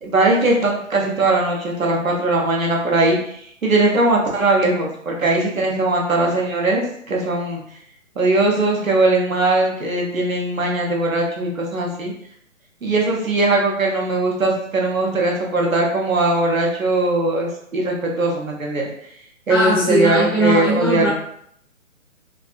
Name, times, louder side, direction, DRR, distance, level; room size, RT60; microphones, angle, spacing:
voice 1, 0.0-7.6 8.2-12.1 12.8-18.9 19.5-21.1, right 2 dB, 80° right, -1 dB, 1.0 m, -20 dB
voice 2, 19.5-21.1, right 1 dB, 20° left, -6 dB, 0.6 m, -19 dB
3.4 x 2.5 x 2.4 m, 0.69 s
figure-of-eight pair, 140°, 40 cm